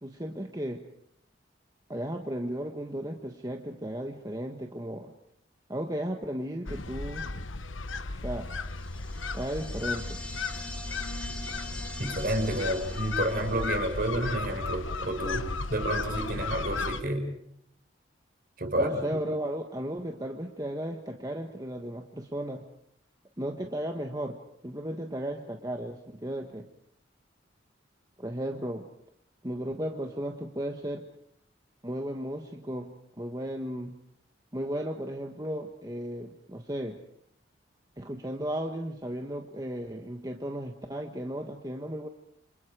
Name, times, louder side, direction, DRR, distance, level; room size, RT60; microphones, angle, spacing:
voice 1, 0.0-0.8 1.9-5.1 5.7-7.3 8.2-8.5 9.3-10.2 18.8-22.6 23.4-24.4 24.6-26.7 28.2-28.9 29.4-31.1 31.8-33.9 34.5-37.0 38.0-42.1, right 1 dB, 20° right, 3 dB, 1.4 m, -35 dB
sound 1, 6.7-17.0, left 3 dB, 90° left, 1.2 m, -35 dB
sound 2, 8.6-14.0, left 1 dB, 5° left, 5.0 m, -43 dB
voice 2, 12.0-15.4 15.7-17.3 18.6-19.2, right 1 dB, 50° right, 5 dB, 5.3 m, -30 dB
28.0 x 27.5 x 5.0 m, 0.73 s
head